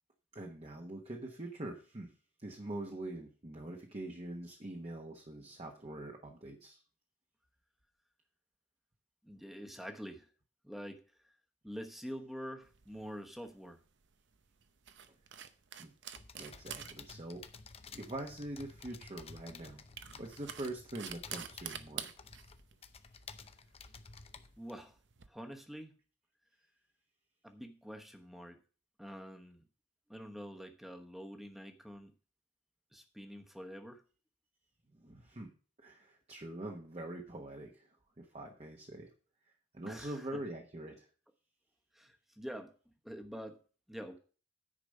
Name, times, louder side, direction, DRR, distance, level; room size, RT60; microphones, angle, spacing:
voice 1, 0.3-2.1 2.4-6.8 15.8-15.9 16.4-17.4 17.9-19.8 20.1-22.1 34.9-35.5 35.8-39.1 39.7-41.1, right 1 dB, 35° right, 2 dB, 1.1 m, -44 dB
voice 2, 9.2-10.3 10.6-11.0 11.6-13.8 24.6-24.9 25.3-26.0 27.4-28.6 29.0-29.6 30.1-32.1 32.9-34.0 39.8-40.2 41.9-42.7 43.0-43.6 43.9-44.2, equal, ahead, 5 dB, 1.1 m, -46 dB
sound 1, 12.6-25.3, right 9 dB, 70° right, 0.8 m, -49 dB
sound 2, 16.1-24.8, left 5 dB, 30° left, 0.6 m, -53 dB
10.0 x 5.1 x 6.5 m, 0.38 s
head